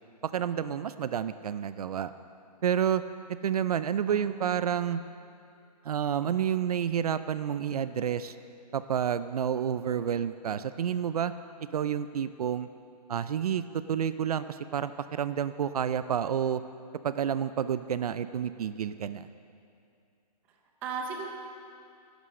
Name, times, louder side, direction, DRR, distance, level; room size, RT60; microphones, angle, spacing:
voice 1, 0.2-2.1 2.6-3.0 3.3-5.0 5.8-8.4 8.7-11.3 11.7-12.7 13.1-16.6 17.0-19.3, right 8 dB, 65° right, 13 dB, 0.5 m, -29 dB
voice 2, 4.1-4.6 20.8-21.3, right 5 dB, 10° right, 2 dB, 0.5 m, -36 dB
11.5 x 11.0 x 6.5 m, 2.5 s
hypercardioid pair, 175°, 21 cm